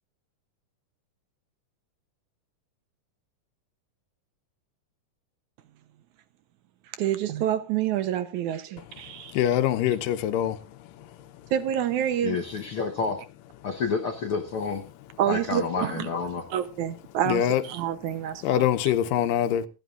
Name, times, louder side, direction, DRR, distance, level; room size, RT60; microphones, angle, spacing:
voice 1, 7.0-9.4 11.5-12.4 15.2-16.1 16.5-18.7, right 10 dB, 70° right, 2.1 m, -28 dB
voice 2, 9.3-10.6 17.3-17.6 18.4-19.7, left 11 dB, 85° left, 2.5 m, -23 dB
voice 3, 12.2-13.2 13.6-14.8 15.3-16.4, left 5 dB, 65° left, 1.4 m, -29 dB
26.5 x 10.5 x 2.5 m
omnidirectional pair, 3.8 m